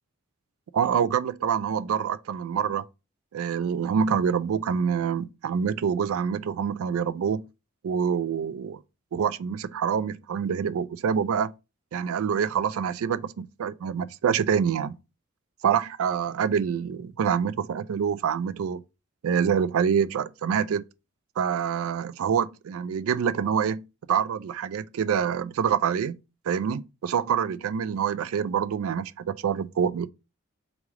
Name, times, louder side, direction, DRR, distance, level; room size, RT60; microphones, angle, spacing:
voice 1, 0.7-2.8 3.3-7.4 7.8-8.8 9.1-11.5 11.9-15.0 15.6-18.8 19.2-20.8 21.4-23.8 24.1-26.2 26.5-30.1, right 7 dB, 75° right, 0.3 m, -26 dB
3.6 x 3.2 x 3.6 m
head